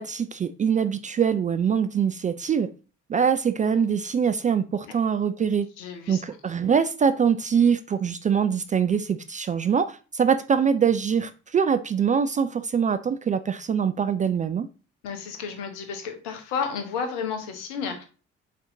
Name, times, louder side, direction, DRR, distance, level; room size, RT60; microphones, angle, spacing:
voice 1, 0.0-2.7 3.1-5.7 6.1-14.7, right 7 dB, 20° right, 0.4 m, -23 dB
voice 2, 5.8-6.2 15.0-18.0, left 6 dB, 70° left, 1.2 m, -32 dB
5.8 x 4.4 x 3.8 m
figure-of-eight pair, 45°, 36 cm